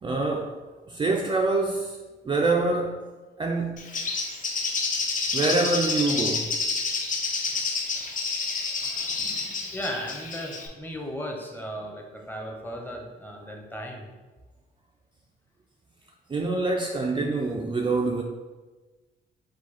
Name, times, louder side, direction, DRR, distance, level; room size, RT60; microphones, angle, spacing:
voice 1, 0.0-0.6 0.9-3.0 3.4-3.8 5.3-6.5 9.2-9.3 9.6-9.7 16.3-18.2, right 3 dB, 25° right, 0 dB, 0.4 m, -26 dB
Bird, 3.8-10.7, left 4 dB, 40° left, 0.7 m, -29 dB
voice 2, 9.7-14.1, equal, 10° left, 0 dB, 0.8 m, -36 dB
4.8 x 2.3 x 4.1 m, 1.3 s
cardioid pair, 90°, 20 cm